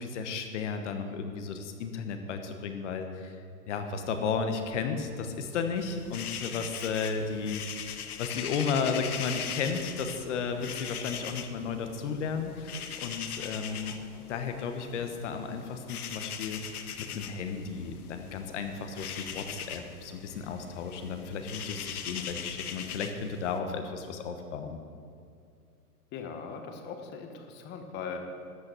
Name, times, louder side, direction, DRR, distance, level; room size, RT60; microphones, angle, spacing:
voice 1, 0.0-3.4 3.7-13.9 14.3-16.6 17.0-24.8, left 5 dB, 50° left, 6 dB, 1.2 m, -34 dB
sound 1, 3.9-22.7, equal, ahead, 1.1 m, -56 dB
sound 2, 5.8-23.6, left 8 dB, 70° left, 1.1 m, -41 dB
voice 2, 26.1-28.2, left 6 dB, 20° left, 5 dB, 1.1 m, -40 dB
12.5 x 6.3 x 7.7 m, 2.4 s
hypercardioid pair, 140°, 47 cm